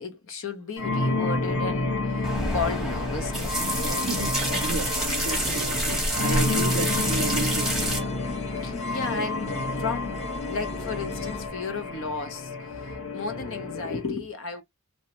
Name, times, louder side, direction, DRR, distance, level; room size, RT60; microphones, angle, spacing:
voice 1, 0.0-4.1 6.3-6.6 8.6-12.5 13.1-14.6, left 4 dB, 65° left, 0.7 m, -34 dB
sound 1, 0.8-14.0, left 2 dB, 90° left, 1.1 m, -30 dB
sound 2, 2.2-8.0, right 1 dB, ahead, 1.0 m, -28 dB
voice 2, 4.0-8.2, right 4 dB, 70° right, 0.5 m, -33 dB
sound 3, 6.2-11.5, left 3 dB, 30° left, 0.4 m, -40 dB
3.0 x 2.1 x 2.9 m
head